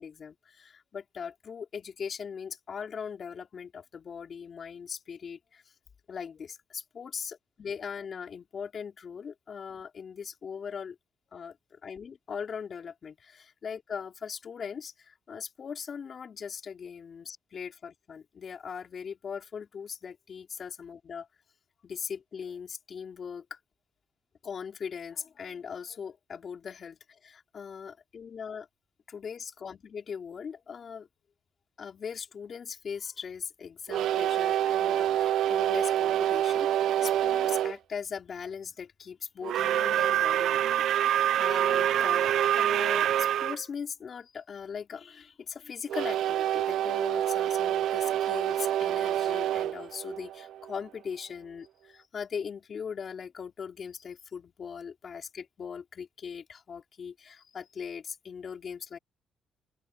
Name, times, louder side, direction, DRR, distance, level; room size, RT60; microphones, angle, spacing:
voice 1, 0.0-5.6 6.1-11.0 11.3-21.3 21.8-23.6 24.4-28.7 29.1-31.1 31.8-59.0, left 6 dB, 50° left, 4.6 m, -40 dB
sound 1, 33.9-37.8 39.4-43.6 45.9-50.8, right 11 dB, 75° right, 0.4 m, -26 dB
open air
cardioid pair, 90°, 0 cm